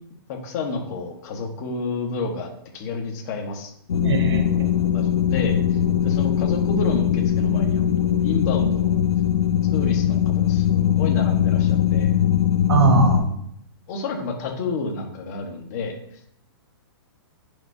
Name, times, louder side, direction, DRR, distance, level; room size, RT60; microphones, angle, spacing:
voice 1, 0.3-3.7 4.9-9.0 9.7-12.2 13.9-16.0, left 3 dB, 40° left, 3 dB, 1.5 m, -30 dB
sound 1, 3.9-13.2, left 10 dB, 90° left, 0.9 m, -20 dB
voice 2, 4.0-4.7 12.7-13.3, right 5 dB, 85° right, 3 dB, 1.7 m, -20 dB
10.0 x 5.2 x 2.8 m, 0.70 s
hypercardioid pair, 155°, 13 cm